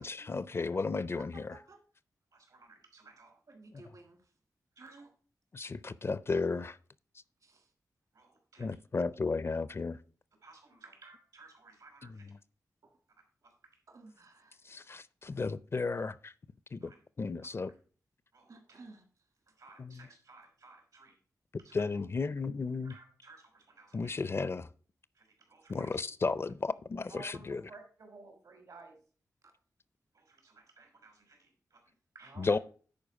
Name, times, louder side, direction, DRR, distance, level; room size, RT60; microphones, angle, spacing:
voice 1, 0.0-1.4 5.5-6.8 8.6-10.0 14.7-16.3 16.7-16.9 17.2-17.7 19.8-19.9 21.7-22.9 23.9-24.7 25.7-27.6 32.4-32.6, left 4 dB, 40° left, 0.4 m, -34 dB
voice 2, 1.3-1.8 3.5-4.3 4.8-5.1 7.4-7.7 12.8-12.9 13.9-14.8 18.5-19.0 29.4-29.5, right 3 dB, 65° right, 1.7 m, -56 dB
voice 3, 2.3-3.4 4.7-5.1 8.1-8.7 10.4-12.3 13.4-13.5 16.8-16.9 18.3-18.5 19.5-21.2 21.6-21.8 22.8-24.2 25.1-26.0 27.1-29.0 30.1-32.6, right 3 dB, 80° right, 3.3 m, -56 dB
10.5 x 4.5 x 4.8 m
wide cardioid pair, 75°, 6 cm